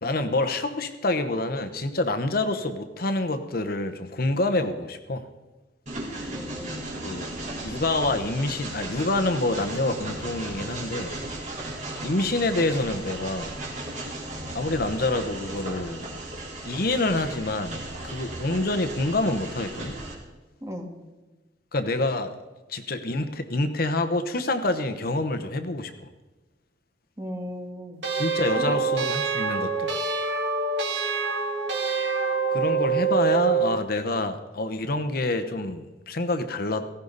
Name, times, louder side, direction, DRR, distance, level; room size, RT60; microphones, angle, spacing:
voice 1, 0.0-5.3 7.0-7.3 7.6-11.2 12.0-13.6 14.5-16.1 16.6-19.9 21.7-22.4 22.7-26.1 28.1-29.9 32.5-36.9, left 2 dB, 55° left, 9 dB, 1.0 m, -27 dB
Train, 5.9-20.1, right 2 dB, 40° right, 3.8 m, -36 dB
voice 2, 6.3-6.9 20.6-20.9 27.2-28.1 28.7-29.1, equal, 15° right, 2 dB, 2.0 m, -36 dB
sound 1, 28.0-33.7, right 5 dB, 70° right, 2.1 m, -25 dB
17.0 x 16.0 x 4.1 m, 1.2 s
head